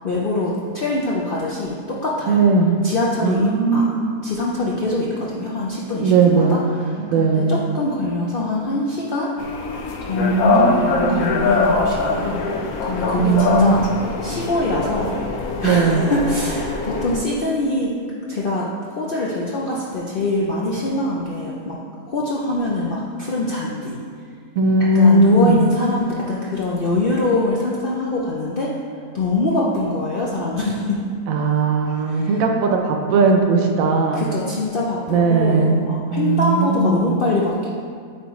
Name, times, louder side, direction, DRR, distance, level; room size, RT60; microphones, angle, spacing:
voice 1, 0.0-2.4 2.8-3.9 4.2-6.6 7.2-9.3 10.0-12.4 12.8-13.8 14.2-15.1 15.6-17.9 18.3-21.7 22.1-24.0 24.9-28.7 29.1-31.0 32.1-32.3 34.1-37.7, left 2 dB, 60° left, -4 dB, 0.5 m, -23 dB
voice 2, 2.3-2.8 3.2-4.1 6.0-6.6 7.1-7.5 10.2-11.2 13.2-13.9 15.6-16.1 24.6-25.7 31.3-34.2 35.1-35.8 36.1-37.2, right 3 dB, 70° right, 3 dB, 1.0 m, -18 dB
sound 1, 9.4-17.2, left 3 dB, 80° left, 1.1 m, -23 dB
8.6 x 3.7 x 3.0 m, 2.1 s
omnidirectional pair, 1.6 m